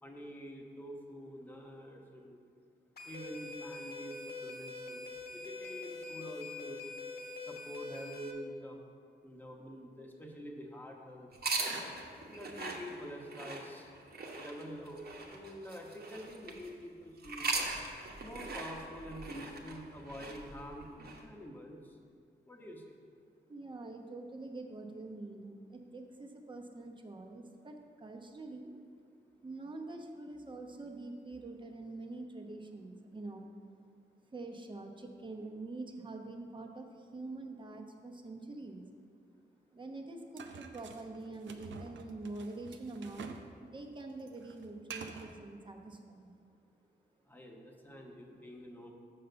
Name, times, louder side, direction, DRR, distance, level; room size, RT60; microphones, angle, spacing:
voice 1, 0.0-2.4 3.0-4.1 4.4-6.8 7.5-8.8 9.2-11.3 12.3-13.9 14.3-17.5 18.2-21.8 22.5-23.0 47.3-48.9, equal, 10° left, 0 dB, 1.1 m, -47 dB
sound 1, 3.0-8.3, left 3 dB, 60° left, 1.4 m, -44 dB
sound 2, 11.3-16.7 17.2-21.2, right 3 dB, 55° right, 1.1 m, -40 dB
voice 2, 23.5-28.7 29.4-33.5 34.3-38.9 39.7-43.3 43.6-46.4, right 2 dB, 25° right, 2 dB, 0.9 m, -45 dB
sound 3, 40.4-43.5 43.8-45.4, right 5 dB, 80° right, 0.6 m, -48 dB
6.6 x 5.6 x 6.8 m, 2.2 s
cardioid pair, 80°, 19 cm